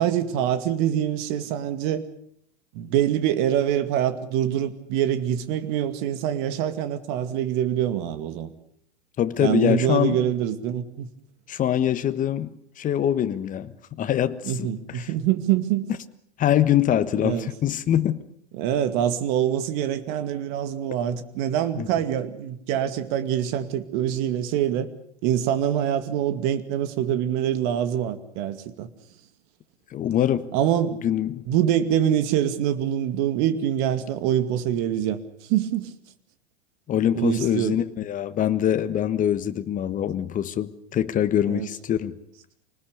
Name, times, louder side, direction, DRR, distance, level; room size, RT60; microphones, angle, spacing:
voice 1, 0.0-2.0 2.7-8.5 9.4-11.1 14.4-15.9 17.2-17.5 18.5-24.9 25.2-28.9 30.5-31.0 31.5-35.2 35.5-35.9 37.1-37.8 41.4-41.7, right 10 dB, 45° right, 2.3 m, -25 dB
voice 2, 9.2-10.3 11.5-13.7 14.0-15.1 16.4-18.2 21.8-21.9 29.9-30.5 31.0-31.4 36.9-42.1, left 10 dB, 25° left, 1.3 m, -24 dB
26.0 x 19.5 x 6.7 m
hypercardioid pair, 105°, 34 cm